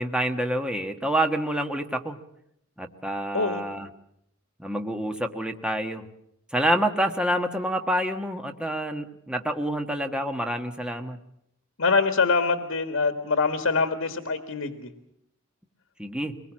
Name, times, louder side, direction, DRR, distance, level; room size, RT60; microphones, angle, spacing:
voice 1, 0.0-2.2 2.8-3.9 4.6-6.0 6.5-11.2 16.0-16.3, right 1 dB, 5° right, 5 dB, 1.3 m, -27 dB
voice 2, 11.8-14.9, left 4 dB, 80° left, 7 dB, 1.6 m, -24 dB
23.5 x 21.0 x 7.5 m, 0.75 s
head